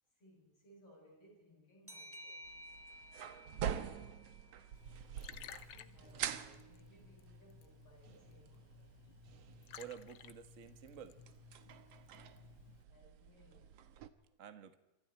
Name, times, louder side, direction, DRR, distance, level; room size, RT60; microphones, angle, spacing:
voice 1, 0.1-2.6 5.7-9.3 9.6-9.7 12.9-13.8, equal, 45° left, 8.8 m, -64 dB
sound 1, 1.9-5.2, equal, 10° right, 1.0 m, -55 dB
sound 2, 2.4-14.1, right 9 dB, 65° right, 1.9 m, -47 dB
Liquid, 4.7-12.8, left 9 dB, 70° left, 1.3 m, -57 dB
voice 2, 9.8-11.2 11.7-11.8 12.1-12.2 12.7-12.8 14.4-14.8, right 8 dB, 45° right, 1.0 m, -51 dB
27.0 x 25.5 x 4.5 m
omnidirectional pair, 3.6 m